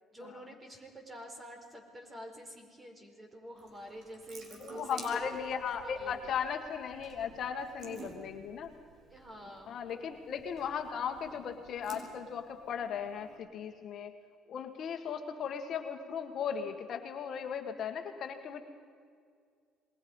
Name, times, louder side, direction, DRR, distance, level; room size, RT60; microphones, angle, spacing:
voice 1, 0.1-5.4 5.8-6.3 9.1-10.2, equal, 20° right, 3 dB, 4.8 m, -48 dB
Water tap faucet / Sink (filling or washing) / Drip, 3.6-13.4, right 3 dB, 60° right, 4.4 m, -53 dB
voice 2, 4.6-8.7 9.7-14.1 14.5-18.6, left 7 dB, 55° left, 5 dB, 1.8 m, -37 dB
27.5 x 21.5 x 5.5 m, 2.1 s
cardioid pair, 110°, 0 cm